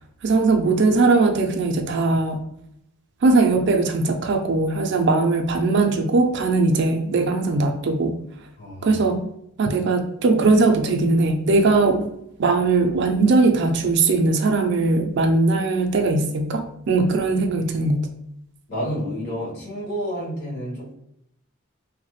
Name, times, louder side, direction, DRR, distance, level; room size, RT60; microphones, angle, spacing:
voice 1, 0.2-2.4 3.2-8.2 8.8-9.2 9.6-12.1 12.4-18.1, right 3 dB, 55° right, 5 dB, 0.4 m, -20 dB
voice 2, 8.6-9.0 18.7-20.9, equal, 50° left, -6 dB, 1.4 m, -30 dB
3.1 x 2.0 x 3.1 m, 0.78 s
head